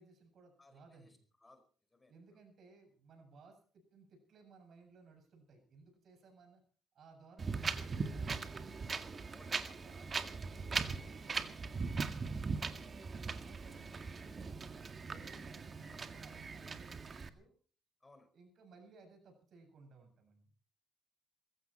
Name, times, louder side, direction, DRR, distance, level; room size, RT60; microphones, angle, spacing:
voice 1, 0.0-1.2 2.1-6.6 6.9-8.6 9.7-14.7 15.0-17.5 18.3-20.5, right 4 dB, 65° right, 5 dB, 7.5 m, -61 dB
voice 2, 0.6-1.6 1.9-2.1 9.3-9.8 18.0-18.3, left 2 dB, 20° left, 8 dB, 4.9 m, -63 dB
Wind, 7.4-17.3, right 4 dB, 40° right, 1.9 m, -40 dB
21.0 x 16.0 x 4.4 m, 0.43 s
cardioid pair, 90°, 0 cm